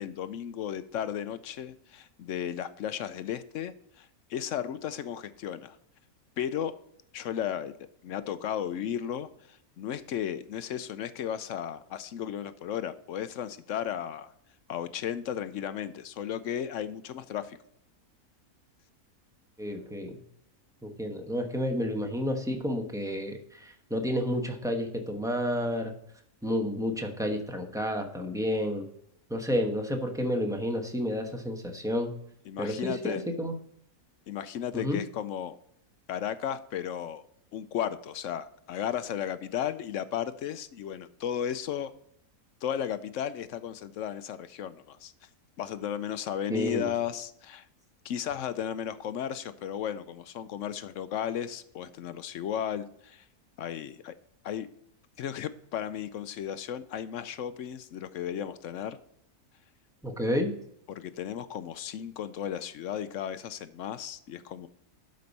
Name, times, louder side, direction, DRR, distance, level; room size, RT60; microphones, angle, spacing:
voice 1, 0.0-5.8 6.4-6.8 7.1-7.8 8.0-14.3 14.7-17.6 32.5-33.2 34.3-35.6 36.1-37.2 37.5-41.9 42.6-45.1 45.6-47.7 48.0-53.2 53.6-54.1 54.4-54.7 55.2-59.0 60.9-64.7, left 9 dB, 65° left, 12 dB, 0.8 m, -34 dB
voice 2, 19.6-20.2 20.8-25.9 26.4-28.9 29.3-32.1 32.6-33.5 34.7-35.0 46.5-46.9 60.0-60.5, equal, 5° right, 4 dB, 1.0 m, -30 dB
12.0 x 5.3 x 4.1 m, 0.71 s
omnidirectional pair, 1.6 m